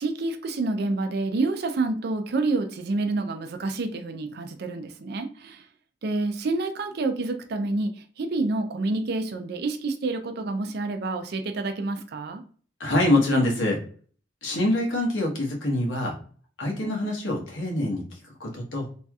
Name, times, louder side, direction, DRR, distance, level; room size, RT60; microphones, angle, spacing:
voice 1, 0.0-5.6 6.0-7.9 8.2-12.4, right 3 dB, 55° right, 6 dB, 0.4 m, -28 dB
voice 2, 12.8-13.8 14.4-16.2 16.6-18.9, left 1 dB, 85° left, 0 dB, 1.0 m, -25 dB
3.1 x 2.7 x 2.3 m, 0.43 s
head